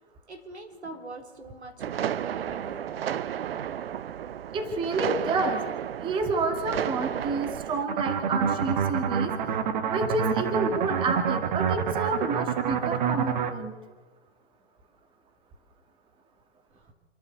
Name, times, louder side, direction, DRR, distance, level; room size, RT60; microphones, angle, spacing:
voice 1, 0.3-2.9 16.8-16.9, right 2 dB, 90° right, 3 dB, 4.3 m, -43 dB
sound 1, 1.8-7.9, right 9 dB, 65° right, 0.8 m, -32 dB
voice 2, 4.5-5.6 6.0-9.3 9.9-13.7, right 3 dB, 15° right, 5 dB, 2.1 m, -29 dB
sound 2, 7.9-13.5, right 7 dB, 45° right, 1.6 m, -27 dB
28.0 x 11.0 x 8.2 m, 1.3 s
hypercardioid pair, 140°, 32 cm